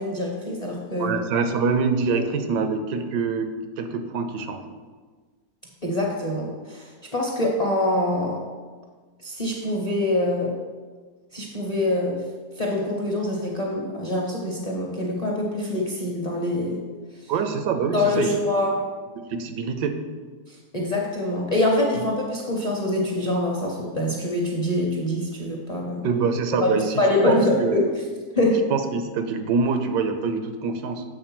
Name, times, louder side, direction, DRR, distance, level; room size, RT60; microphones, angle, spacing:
voice 1, 0.0-1.2 2.1-2.3 5.8-8.4 9.2-10.6 11.3-12.2 12.6-16.9 17.2-17.3 17.9-18.8 20.5-26.1 26.6-27.9 28.3-28.6, left 1 dB, 35° left, -1 dB, 0.6 m, -25 dB
voice 2, 1.0-4.6 17.3-18.4 19.2-20.0 26.0-27.8 28.7-31.0, right 5 dB, 85° right, 8 dB, 1.3 m, -25 dB
7.7 x 3.7 x 6.0 m, 1.5 s
omnidirectional pair, 1.8 m